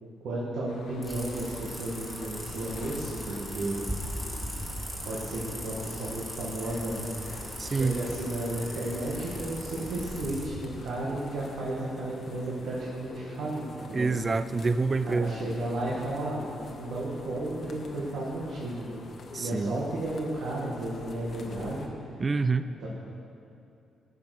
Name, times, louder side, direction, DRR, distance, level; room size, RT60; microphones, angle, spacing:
voice 1, 0.0-3.8 5.0-7.0 7.6-14.1 15.1-16.5 16.8-18.9 19.4-21.9 22.8-22.9, right 1 dB, 80° right, -6 dB, 1.9 m, -33 dB
sound 1, 0.7-10.2, left 3 dB, 85° left, 1.3 m, -49 dB
sound 2, 1.0-10.5, equal, 5° right, 2.2 m, -39 dB
sound 3, 2.2-21.9, left 3 dB, 45° left, 1.0 m, -46 dB
voice 2, 7.6-8.0 13.9-15.4 19.3-19.7 22.2-22.7, right 4 dB, 30° right, 12 dB, 0.3 m, -27 dB
13.5 x 6.0 x 6.0 m, 2.6 s
cardioid pair, 125°, 0 cm